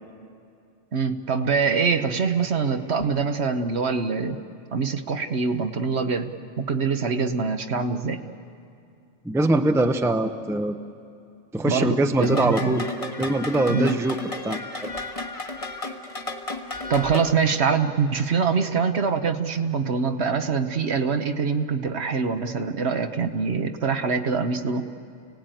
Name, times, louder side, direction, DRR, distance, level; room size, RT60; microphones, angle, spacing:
voice 1, 0.9-4.4 4.7-8.2 11.6-12.8 13.7-14.0 16.9-24.8, right 5 dB, 60° right, 7 dB, 1.3 m, -24 dB
voice 2, 9.2-10.7 11.5-12.9 13.2-14.2 14.4-14.9, right 2 dB, 5° right, 7 dB, 0.7 m, -23 dB
sound 1, 12.2-17.3, left 2 dB, 30° left, 1.4 m, -33 dB
29.5 x 18.0 x 9.1 m, 2.4 s
omnidirectional pair, 1.3 m